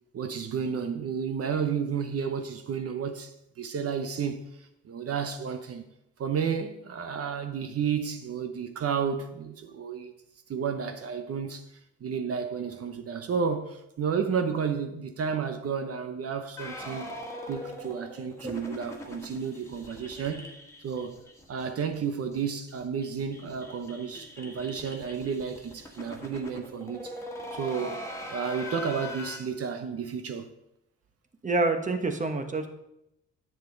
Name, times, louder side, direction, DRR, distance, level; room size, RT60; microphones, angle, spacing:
voice 1, 0.1-5.9 6.2-10.1 10.5-11.6 12.0-17.1 17.5-20.5 20.8-21.2 21.5-27.2 27.5-28.0 28.3-30.5, right 6 dB, 50° right, 0.9 m, -32 dB
sound 1, 16.6-21.7 21.9-22.0 22.3-22.4 22.7-29.4, left 1 dB, 10° left, 1.8 m, -42 dB
voice 2, 31.4-32.7, right 3 dB, 25° right, 1.2 m, -27 dB
10.0 x 7.2 x 3.9 m
cardioid pair, 90°, 30 cm